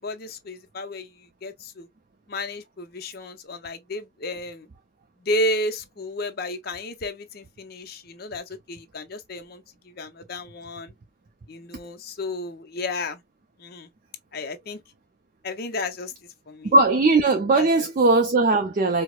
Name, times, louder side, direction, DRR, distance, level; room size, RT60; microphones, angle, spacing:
voice 1, 0.0-1.9 2.3-4.7 5.2-10.9 11.5-13.2 13.6-13.9 14.3-14.8 15.4-16.1 16.5-16.7 17.6-17.9, left 1 dB, 50° left, 0.6 m, -32 dB
voice 2, 16.6-19.0, right 2 dB, 40° right, 0.4 m, -19 dB
4.6 x 2.0 x 2.2 m
head